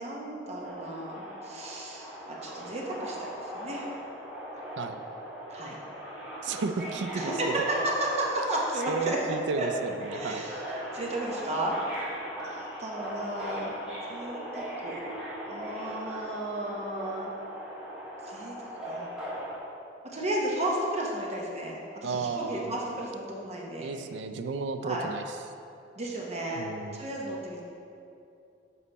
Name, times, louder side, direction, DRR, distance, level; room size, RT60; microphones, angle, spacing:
voice 1, 0.0-3.9 5.5-5.8 7.2-7.5 7.8-9.2 9.6-9.7 10.1-10.6 10.9-11.8 12.4-13.8 14.1-15.0 15.4-17.3 18.2-19.1 20.1-23.9 24.8-25.1 26.0-26.6 26.9-27.6, right 1 dB, 35° right, -2 dB, 0.9 m, -34 dB
Subway metro underground, 0.6-19.6, equal, 5° right, 1.4 m, -39 dB
voice 2, 6.4-7.7 8.9-10.4 22.0-22.7 23.8-25.2 26.6-27.1, right 4 dB, 70° right, 9 dB, 0.4 m, -33 dB
7.1 x 4.1 x 4.1 m, 2.7 s
head